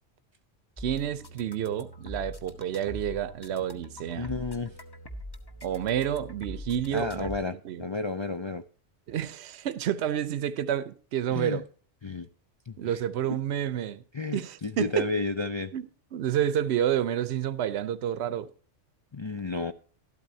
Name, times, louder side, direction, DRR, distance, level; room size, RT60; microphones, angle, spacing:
sound 1, 0.8-7.4, equal, 20° left, 1.0 m, -43 dB
voice 1, 0.8-4.3 5.6-7.3 7.6-7.8 9.1-11.6 12.8-14.0 14.3-15.1 15.7-15.9 16.1-18.5, right 10 dB, 65° right, 1.0 m, -29 dB
voice 2, 4.1-4.7 6.9-8.6 11.3-11.6 12.0-12.3 12.7-13.0 13.3-13.4 14.1-15.7 19.1-19.7, left 3 dB, 45° left, 0.3 m, -32 dB
13.0 x 12.5 x 2.7 m
omnidirectional pair, 1.2 m